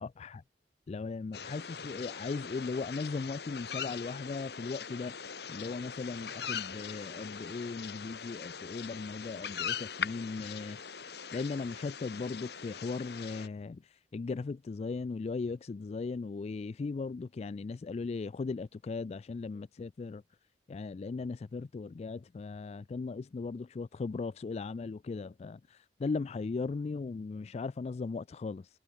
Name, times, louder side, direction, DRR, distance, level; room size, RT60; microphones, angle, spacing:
voice 1, 0.0-0.4 0.9-5.2 5.5-10.8 11.3-13.8 14.1-20.2 20.7-28.7, left 4 dB, 35° left, 0.3 m, -37 dB
sound 1, 1.3-13.5, left 7 dB, 65° left, 1.8 m, -41 dB
head